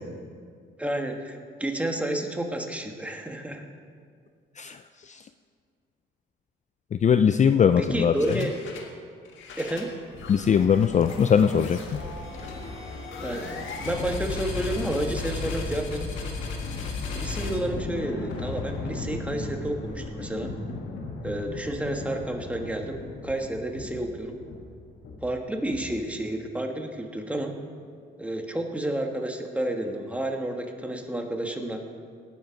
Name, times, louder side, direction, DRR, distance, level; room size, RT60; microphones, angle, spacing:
voice 1, 0.8-3.6 7.8-8.5 9.6-9.9 13.2-16.1 17.1-20.5 21.2-24.3 25.2-27.5 28.2-31.8, right 1 dB, 5° right, 3 dB, 1.5 m, -30 dB
voice 2, 7.0-8.1 10.3-11.8, left 7 dB, 35° left, 10 dB, 0.4 m, -20 dB
sound 1, 8.1-8.9 9.3-26.2, left 3 dB, 75° left, 1.7 m, -35 dB
18.5 x 7.4 x 5.2 m, 2.1 s
cardioid pair, 90°, 20 cm